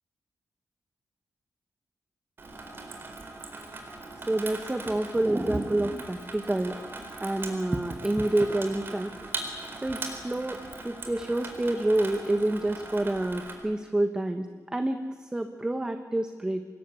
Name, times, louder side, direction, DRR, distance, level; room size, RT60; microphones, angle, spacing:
Water tap faucet / Sink (filling or washing), 2.4-13.5, right 3 dB, 40° right, 4.4 m, -40 dB
voice 1, 4.2-9.1 9.8-16.6, right 1 dB, 10° right, 7 dB, 1.2 m, -28 dB
25.5 x 21.0 x 9.7 m, 1.4 s
wide cardioid pair, 175°, 6 cm